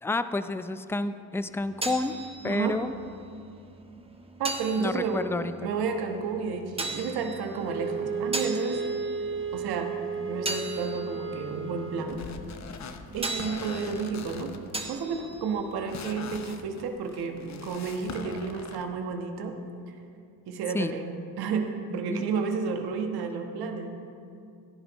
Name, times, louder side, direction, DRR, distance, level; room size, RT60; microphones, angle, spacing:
voice 1, 0.0-2.1 2.4-2.9 4.8-5.5 20.7-21.0 22.1-22.2, left 2 dB, 5° left, 11 dB, 0.4 m, -29 dB
sound 1, 1.4-16.9, right 2 dB, 15° right, 1.2 m, -40 dB
voice 2, 2.4-2.8 4.4-5.3 5.6-8.8 9.5-9.9 10.3-12.2 13.1-14.5 14.9-19.5 20.5-23.9, right 5 dB, 75° right, 4 dB, 1.3 m, -31 dB
Wind instrument woodwind instrument, 7.7-12.2, right 5 dB, 35° right, 0.8 m, -33 dB
sound 2, 12.1-18.9, left 6 dB, 45° left, 0.9 m, -42 dB
16.0 x 10.5 x 3.1 m, 2.5 s
supercardioid pair, 70°, 38 cm